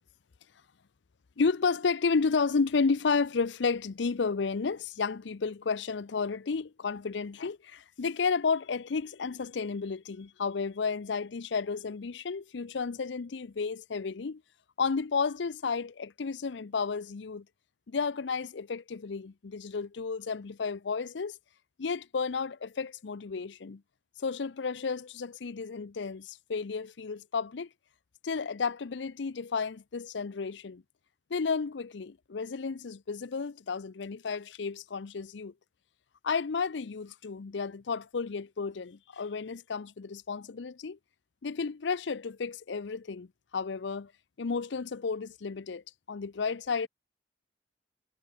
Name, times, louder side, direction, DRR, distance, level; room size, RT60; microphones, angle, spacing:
voice 1, 1.4-14.4 14.8-17.5 17.9-21.4 21.8-23.8 24.2-27.7 28.2-30.8 31.3-35.5 36.2-41.0 41.4-43.3 43.5-44.1 44.4-46.9, left 5 dB, 70° left, 0.6 m, -32 dB
head